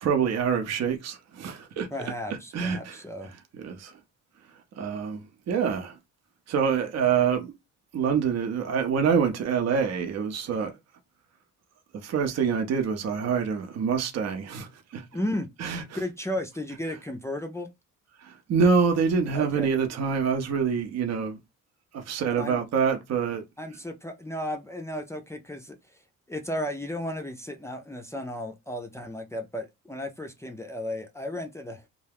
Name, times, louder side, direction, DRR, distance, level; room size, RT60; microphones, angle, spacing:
voice 1, 0.0-1.9 2.5-3.0 3.6-4.0 4.8-6.0 6.5-7.5 7.9-10.7 11.9-15.0 15.6-16.0 18.2-21.4 21.9-23.4, right 6 dB, 60° right, 0.7 m, -26 dB
voice 2, 1.9-3.3 15.1-15.5 15.9-17.7 19.3-19.7 22.3-22.6 23.6-26.0 26.3-31.8, left 1 dB, 10° left, 0.4 m, -34 dB
2.3 x 2.2 x 3.4 m
cardioid pair, 90°, 30 cm